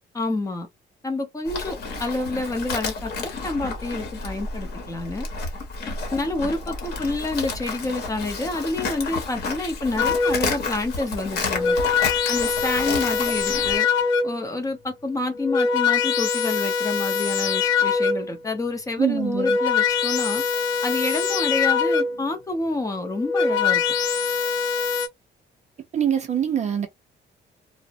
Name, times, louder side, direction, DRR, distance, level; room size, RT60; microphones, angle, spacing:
voice 1, 0.1-0.7 1.0-5.3 6.1-11.8 12.3-13.9 14.2-20.4 20.8-23.8, left 2 dB, 15° left, 0.6 m, -28 dB
Livestock farm animals working animals, 1.4-13.8, left 4 dB, 60° left, 0.9 m, -31 dB
sound 1, 10.0-10.6 11.3-14.5 15.3-18.4 19.1-22.3 23.1-25.1, left 5 dB, 85° left, 0.6 m, -23 dB
voice 2, 19.0-19.6 25.9-26.9, right 9 dB, 35° right, 0.4 m, -24 dB
2.4 x 2.0 x 2.8 m
cardioid pair, 165°, 19 cm